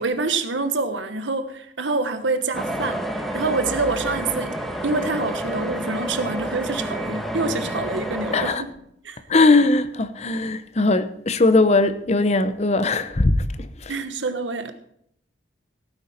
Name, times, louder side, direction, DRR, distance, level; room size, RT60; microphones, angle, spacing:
voice 1, 0.0-4.6 4.8-8.7 9.0-9.2 13.9-14.7, right 3 dB, 90° right, 1.2 m, -26 dB
sound 1, 2.5-8.5, equal, ahead, 1.4 m, -29 dB
voice 2, 9.3-13.9, left 2 dB, 35° left, 0.7 m, -19 dB
16.0 x 9.0 x 4.3 m
head